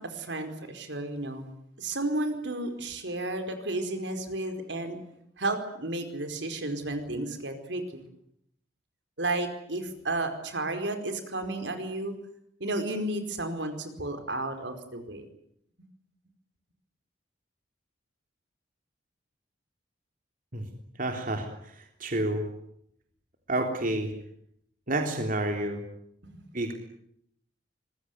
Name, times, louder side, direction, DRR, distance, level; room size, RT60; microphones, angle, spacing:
voice 1, 0.0-1.5 1.8-5.0 5.4-8.1 9.2-12.2 12.6-15.3 26.2-26.3, right 2 dB, 70° right, 7 dB, 4.8 m, -32 dB
voice 2, 21.0-22.5 23.5-24.1 24.9-25.8 26.5-26.7, right 1 dB, 50° right, 4 dB, 3.6 m, -29 dB
25.5 x 20.5 x 9.5 m, 0.71 s
head